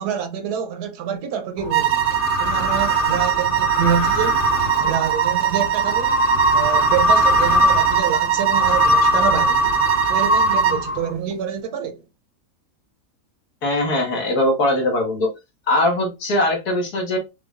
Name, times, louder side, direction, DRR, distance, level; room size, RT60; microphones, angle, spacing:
voice 1, 0.0-2.1 2.4-4.5 4.8-6.2 6.5-9.7 10.1-12.0, right 8 dB, 80° right, 1.3 m, -27 dB
sound 1, 1.6-11.3, left 1 dB, 35° left, 1.5 m, -21 dB
sound 2, 1.7-10.9, right 11 dB, 65° right, 0.9 m, -22 dB
voice 2, 13.6-15.3 15.7-17.2, left 1 dB, 75° left, 2.0 m, -20 dB
5.9 x 3.3 x 2.4 m
omnidirectional pair, 1.7 m